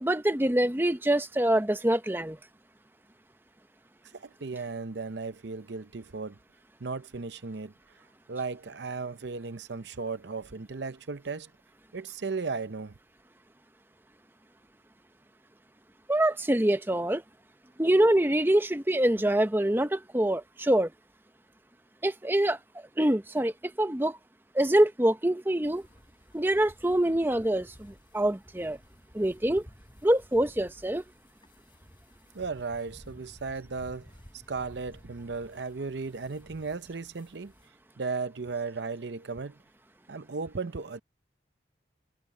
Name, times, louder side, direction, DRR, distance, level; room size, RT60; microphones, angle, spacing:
voice 1, 0.0-2.4 16.1-17.2 17.8-20.9 22.0-22.6 23.0-24.2 24.5-25.8 26.3-28.8 29.1-29.6 30.0-31.0, right 1 dB, 10° right, 0.8 m, -25 dB
voice 2, 4.2-6.4 6.8-7.7 8.3-11.5 11.9-12.9 32.3-34.1 34.5-37.5 38.0-39.5 40.1-41.0, right 4 dB, 65° right, 0.7 m, -35 dB
Cows Grunting and Eating, 25.6-37.7, equal, 25° left, 7.0 m, -54 dB
head